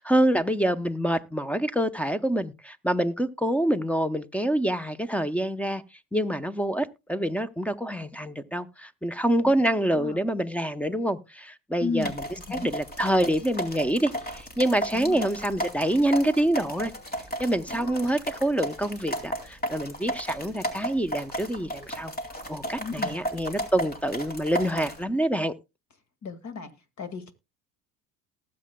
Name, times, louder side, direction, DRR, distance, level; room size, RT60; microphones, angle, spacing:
voice 1, 0.0-5.8 6.1-12.1 12.5-16.9 17.4-22.1 22.5-25.5, right 1 dB, 5° left, 0.8 m, -26 dB
voice 2, 9.4-10.2 11.8-12.1 12.5-12.7 14.9-15.2 17.7-18.1 22.8-23.2 26.2-26.7 27.0-27.3, left 5 dB, 45° left, 2.0 m, -35 dB
sound 1, 12.0-25.0, equal, 20° left, 2.4 m, -34 dB
19.0 x 7.7 x 2.3 m
hypercardioid pair, 75°, 41 cm